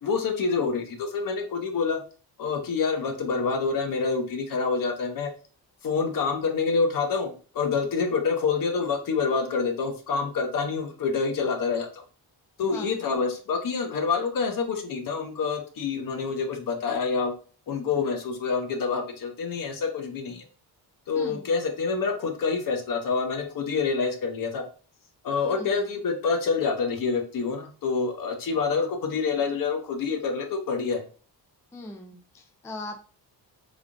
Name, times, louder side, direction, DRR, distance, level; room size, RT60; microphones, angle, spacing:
voice 1, 0.0-2.0 2.4-5.3 5.8-12.0 12.6-17.3 17.7-20.4 21.1-24.6 25.2-31.0, left 5 dB, 55° left, 4 dB, 0.8 m, -27 dB
voice 2, 21.1-21.5 25.5-25.8 31.7-33.0, left 2 dB, 10° left, 4 dB, 0.3 m, -39 dB
3.5 x 2.3 x 3.6 m, 0.38 s
wide cardioid pair, 165°, 39 cm